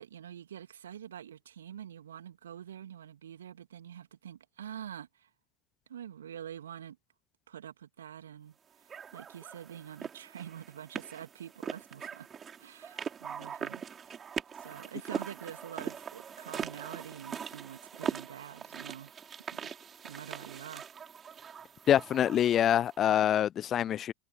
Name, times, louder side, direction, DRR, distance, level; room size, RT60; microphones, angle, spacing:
voice 1, 0.0-5.3 5.9-7.0 7.5-12.3 12.6-14.1 14.5-19.1 19.5-19.7 20.0-20.9, right 9 dB, 70° right, 2.7 m, -46 dB
sound 1, 8.9-23.0, right 7 dB, 25° right, 6.1 m, -41 dB
voice 2, 21.9-24.1, left 10 dB, 35° left, 0.7 m, -25 dB
figure-of-eight pair, 75°, 0 cm